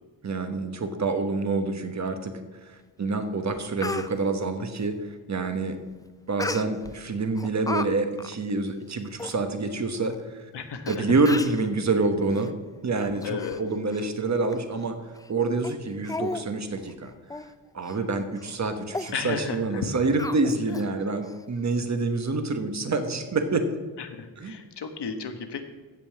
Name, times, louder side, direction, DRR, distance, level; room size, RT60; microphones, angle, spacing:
voice 1, 0.2-5.8 6.3-10.4 10.9-12.5 12.8-15.0 15.3-17.1 17.7-23.7 24.4-24.5, right 3 dB, 40° right, 7 dB, 1.2 m, -27 dB
Speech, 3.1-3.2 3.5-4.1 6.4-6.9 7.4-7.9 8.2-8.3 8.9-9.0 9.2-9.4 10.1-10.2 10.9-11.0 11.2-11.6 12.3-12.5 12.9-13.6 13.9-14.1 14.5-14.6 15.1-15.3 15.6-15.7 16.0-16.4 16.8-16.9 17.3-17.5 17.8-18.0 18.4-18.5 18.9-19.1 20.2-20.9 21.2-21.3, left 2 dB, 10° left, 0.3 m, -34 dB
voice 2, 10.5-11.0 13.2-13.6 19.1-19.9 24.0-25.6, left 6 dB, 70° left, 7 dB, 1.4 m, -33 dB
15.0 x 5.4 x 7.7 m, 1.4 s
wide cardioid pair, 150°, 43 cm